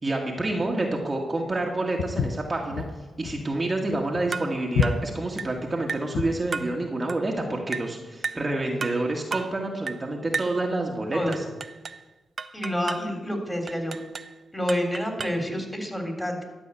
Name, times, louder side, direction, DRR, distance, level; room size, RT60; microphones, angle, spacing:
voice 1, 0.0-2.9 3.2-11.4, right 2 dB, 30° right, 0 dB, 1.7 m, -28 dB
Walk footsteps, 2.0-6.5, left 6 dB, 85° left, 0.6 m, -29 dB
sound 1, 4.3-4.6 4.8-5.1 5.4-5.6 5.9-6.1 6.5-6.8 7.1-7.3 7.7-7.9 8.2-8.5 8.8-9.0 9.3-9.5 9.9-10.1 10.3-10.6 11.3-12.0 12.4-13.1 13.7-14.3 14.7-15.5, right 5 dB, 55° right, 0.6 m, -34 dB
voice 2, 12.5-13.9 14.5-16.4, equal, 10° left, 3 dB, 3.4 m, -28 dB
12.5 x 5.4 x 8.9 m, 1.2 s
supercardioid pair, 55°, 0 cm